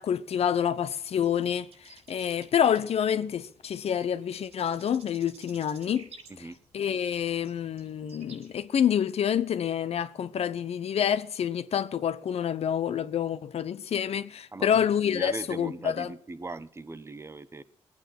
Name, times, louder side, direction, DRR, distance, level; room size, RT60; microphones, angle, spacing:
voice 1, 0.0-6.1 6.7-16.1, left 8 dB, 75° left, 0.9 m, -28 dB
sound 1, 0.8-8.7, right 4 dB, 75° right, 4.3 m, -53 dB
voice 2, 14.5-17.6, right 2 dB, 25° right, 0.9 m, -39 dB
21.0 x 8.9 x 5.9 m
cardioid pair, 80°, 11 cm